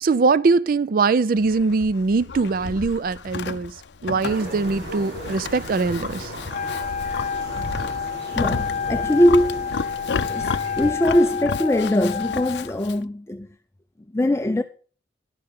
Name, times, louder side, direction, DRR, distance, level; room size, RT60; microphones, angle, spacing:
voice 1, 0.0-3.7 4.0-6.3, right 4 dB, 55° right, 0.4 m, -22 dB
Livestock farm animals working animals, 1.4-13.0, left 5 dB, 70° left, 0.5 m, -33 dB
sound 1, 4.2-10.9, equal, 80° right, 4.8 m, -36 dB
Wind instrument woodwind instrument, 6.5-12.7, left 6 dB, 45° left, 0.8 m, -29 dB
voice 2, 8.3-9.8 10.1-13.5 14.1-14.6, left 1 dB, 15° left, 0.4 m, -21 dB
11.5 x 5.7 x 6.5 m
head